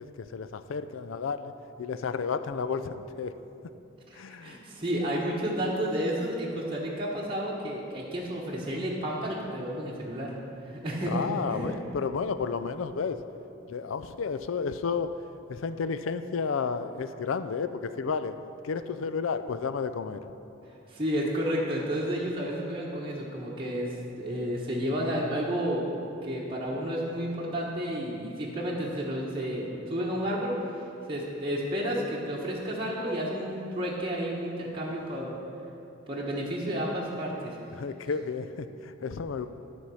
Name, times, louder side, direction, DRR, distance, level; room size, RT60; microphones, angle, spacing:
voice 1, 0.0-1.5 1.8-3.3 4.1-4.6 11.1-13.2 13.7-15.1 15.5-18.4 18.6-20.2 37.7-39.5, left 5 dB, 85° left, 11 dB, 0.4 m, -32 dB
voice 2, 4.1-10.3 10.6-11.8 20.9-25.9 26.2-30.6 31.1-35.4 36.1-37.5, equal, 25° right, -5 dB, 1.0 m, -31 dB
12.5 x 4.3 x 6.2 m, 2.8 s
head